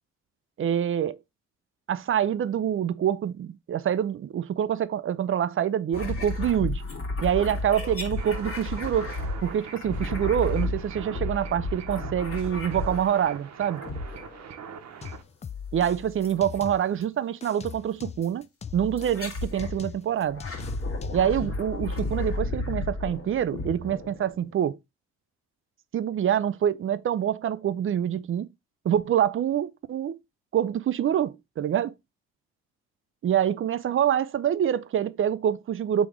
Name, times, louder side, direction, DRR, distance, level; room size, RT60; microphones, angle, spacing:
voice 1, 0.6-1.2 1.9-6.8 7.2-9.1 9.4-13.8 15.7-18.5 18.7-20.4 21.1-24.8 25.9-28.5 28.8-30.2 30.5-31.9 33.2-36.1, right 9 dB, 45° right, 0.5 m, -26 dB
sound 1, 5.9-13.4 13.8-14.5 16.2-16.7 17.7-17.8 19.0-19.8 20.2-24.6, left 2 dB, 50° left, 1.7 m, -33 dB
sound 2, 8.2-15.2, right 7 dB, 60° right, 0.8 m, -43 dB
sound 3, 15.0-17.0 17.4-21.4, left 7 dB, 25° left, 0.3 m, -40 dB
3.5 x 3.0 x 4.7 m
supercardioid pair, 65°, 30 cm